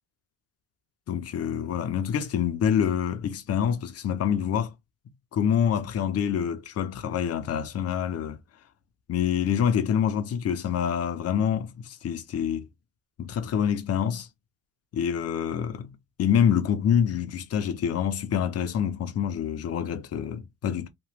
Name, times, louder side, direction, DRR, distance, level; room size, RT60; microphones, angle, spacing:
voice 1, 1.1-4.7 5.3-8.4 9.1-12.7 13.2-14.3 14.9-15.9 16.2-20.9, left 8 dB, 35° left, 0.5 m, -26 dB
2.9 x 2.2 x 3.2 m
cardioid pair, 135°, 44 cm